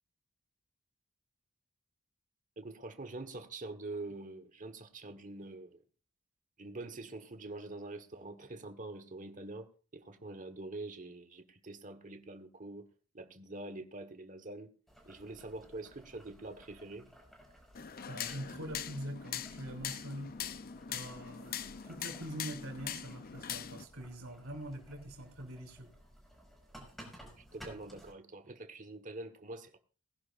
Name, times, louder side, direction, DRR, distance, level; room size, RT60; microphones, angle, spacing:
voice 1, 2.6-5.8 6.6-12.9 13.1-14.7 15.0-17.1 27.4-29.8, right 2 dB, 35° right, 1.3 m, -45 dB
Boiling, 14.9-28.1, equal, ahead, 5.4 m, -57 dB
sound 1, 17.7-23.8, left 8 dB, 45° left, 0.6 m, -42 dB
voice 2, 18.1-20.3 20.9-25.9, right 1 dB, 70° right, 3.4 m, -44 dB
20.0 x 11.0 x 2.5 m
head